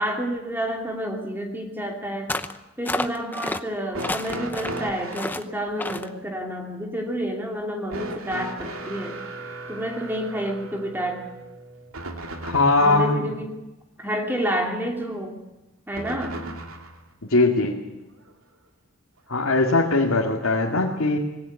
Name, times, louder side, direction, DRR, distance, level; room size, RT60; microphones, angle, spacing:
voice 1, 0.0-2.3 2.8-9.2 9.7-11.2 12.8-13.5 14.0-15.4 15.9-16.4, equal, 10° right, 1 dB, 2.7 m, -29 dB
sound 1, 2.3-2.6 2.8-3.6 4.0-4.8 5.1-5.4 5.8-6.1, left 2 dB, 10° left, 0.8 m, -29 dB
sound 2, 3.9-5.4 7.9-13.0 15.9-17.0 18.2-18.3 19.4-19.5, right 2 dB, 80° right, 2.6 m, -36 dB
voice 2, 12.4-13.3 17.3-17.8 19.3-21.2, left 2 dB, 80° left, -1 dB, 2.3 m, -20 dB
20.0 x 17.5 x 9.6 m, 0.98 s
head